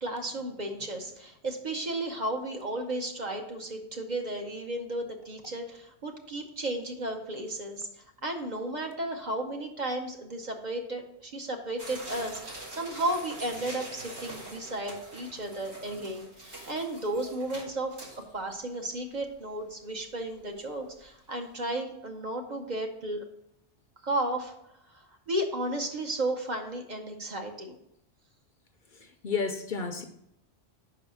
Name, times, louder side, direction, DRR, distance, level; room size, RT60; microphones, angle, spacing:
voice 1, 0.0-7.9 8.2-17.9 18.3-23.2 24.0-24.5 25.3-27.8, right 1 dB, 45° right, 3 dB, 0.9 m, -34 dB
sound 1, 11.8-18.6 19.0-19.1 19.4-19.5 20.0-20.2 20.6-20.8 21.1-21.2, right 1 dB, 75° right, 2.2 m, -44 dB
voice 2, 29.0-30.0, left 5 dB, 55° left, 7 dB, 0.7 m, -32 dB
5.4 x 4.9 x 6.1 m, 0.79 s
omnidirectional pair, 1.1 m